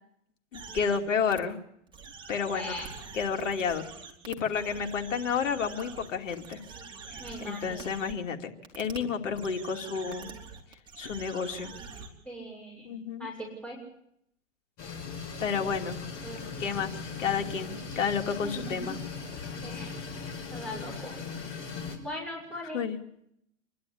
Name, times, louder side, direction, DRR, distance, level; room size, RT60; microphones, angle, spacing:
voice 1, 0.5-1.6 2.3-2.8 3.1-3.9 4.2-6.6 7.1-10.3 11.0-11.7 12.8-13.3 15.4-16.0 16.6-16.9 17.2-19.0 22.7-23.0, left 6 dB, 75° left, 4 dB, 2.9 m, -31 dB
sound 1, 0.5-1.0 1.3-1.4 1.9-8.1 8.6-9.0 9.3-12.1, right 5 dB, 10° right, 3.7 m, -45 dB
voice 2, 2.5-2.9 7.2-7.9 12.2-13.8 16.2-16.4 18.4-19.0 19.6-19.9 20.5-21.1 22.0-22.8, left 1 dB, 5° left, -3 dB, 6.5 m, -40 dB
sound 2, 14.8-22.0, left 5 dB, 35° left, 6.2 m, -39 dB
27.5 x 12.0 x 10.0 m, 0.76 s
hypercardioid pair, 130°, 38 cm